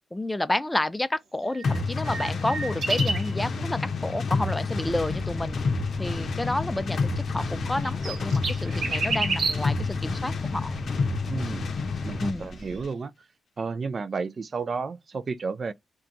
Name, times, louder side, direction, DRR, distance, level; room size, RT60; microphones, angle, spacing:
voice 1, 0.1-5.6 6.0-10.8 12.2-12.5, left 1 dB, 15° left, 0.4 m, -30 dB
sound 1, 1.5-3.4 7.6-9.8 12.7-12.8, right 3 dB, 70° right, 0.7 m, -30 dB
sound 2, 1.6-12.4, left 4 dB, 65° left, 0.6 m, -29 dB
sound 3, 4.8-12.9, equal, 15° right, 0.9 m, -43 dB
voice 2, 11.2-11.7 12.0-13.1 13.6-15.7, right 4 dB, 55° right, 0.3 m, -32 dB
2.3 x 2.3 x 3.9 m
supercardioid pair, 45°, 0 cm